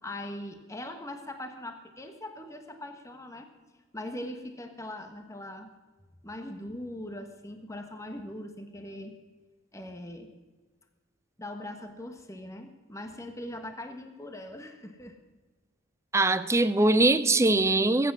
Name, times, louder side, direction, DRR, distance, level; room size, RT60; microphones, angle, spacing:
voice 1, 0.0-3.5 3.9-5.7 6.2-9.2 9.7-10.3 11.4-15.2, left 1 dB, 15° left, 1.3 m, -41 dB
voice 2, 16.1-18.1, right 2 dB, 15° right, 0.5 m, -22 dB
20.5 x 9.0 x 6.1 m
head